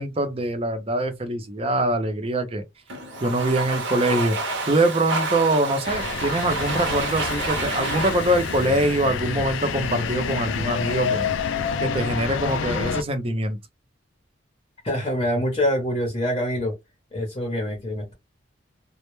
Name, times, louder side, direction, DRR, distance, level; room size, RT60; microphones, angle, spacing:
voice 1, 0.0-2.6 3.2-11.2 11.8-13.6, right 1 dB, 30° right, 0.5 m, -24 dB
Domestic sounds home sounds, 2.9-9.8, right 2 dB, 65° right, 0.7 m, -30 dB
sound 1, 5.8-13.0, left 6 dB, 75° left, 0.4 m, -28 dB
voice 2, 14.8-16.7 17.1-18.1, equal, 25° left, 0.7 m, -25 dB
2.1 x 2.0 x 3.0 m
head